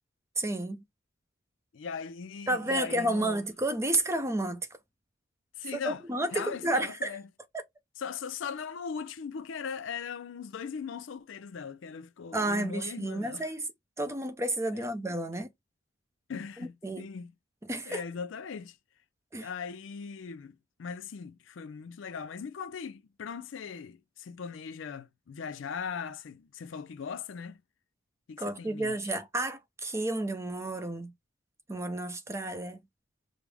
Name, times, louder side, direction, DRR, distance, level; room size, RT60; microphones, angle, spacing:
voice 1, 0.4-0.8 2.5-4.6 5.7-7.1 7.5-7.6 12.3-13.7 14.0-15.5 16.6-17.0 17.7-18.0 19.3-19.5 28.4-31.1 31.7-32.8, right 1 dB, 15° right, 0.5 m, -31 dB
voice 2, 1.7-3.4 5.6-6.0 6.3-7.2 8.0-13.5 14.7-14.9 16.3-17.3 17.9-18.8 19.4-27.6 28.3-29.1, left 6 dB, 65° left, 0.4 m, -39 dB
5.0 x 2.0 x 3.4 m
head